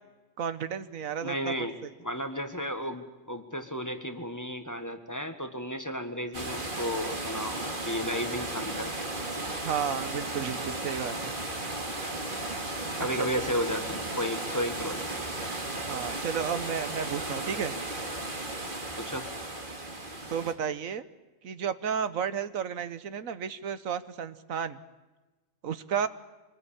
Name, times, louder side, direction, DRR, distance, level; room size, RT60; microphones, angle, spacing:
voice 1, 0.4-1.9 9.6-11.3 13.2-13.3 15.9-17.7 20.3-21.0 21.4-24.8 25.6-26.1, right 7 dB, 90° right, 13 dB, 1.5 m, -32 dB
voice 2, 1.2-9.1 13.0-15.3 19.0-19.3, equal, 15° left, 6 dB, 1.5 m, -33 dB
sound 1, 6.3-20.5, right 2 dB, 40° right, 2.4 m, -35 dB
24.5 x 19.5 x 8.8 m, 1.1 s
omnidirectional pair, 1.4 m